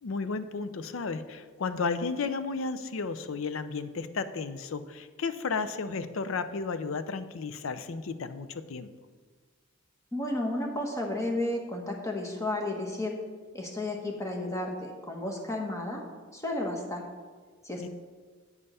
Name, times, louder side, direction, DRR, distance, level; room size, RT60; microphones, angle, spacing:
voice 1, 0.0-8.9 17.8-17.9, left 4 dB, 65° left, 12 dB, 0.5 m, -33 dB
voice 2, 10.1-13.2 13.5-16.0 16.3-17.0 17.6-17.9, left 1 dB, 15° left, 1 dB, 1.1 m, -32 dB
8.1 x 5.4 x 5.5 m, 1.5 s
head